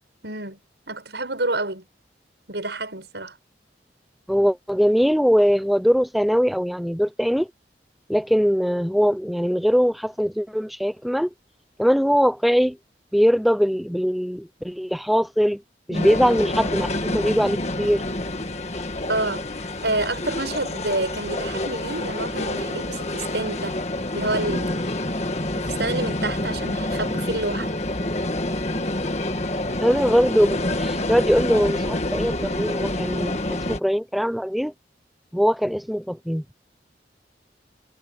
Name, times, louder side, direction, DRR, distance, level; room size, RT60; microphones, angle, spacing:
voice 1, 0.2-0.6 0.9-1.8 2.5-3.3 15.9-16.1 19.1-23.8 24.1-24.8 25.6-27.7 33.2-33.4, right 2 dB, 70° right, 7.1 m, -28 dB
voice 2, 4.3-7.5 8.1-11.3 11.8-12.8 13.1-15.6 15.9-18.0 29.8-34.7 35.3-36.4, equal, ahead, 0.7 m, -21 dB
sound 1, 15.9-33.8, left 1 dB, 40° left, 1.8 m, -27 dB
head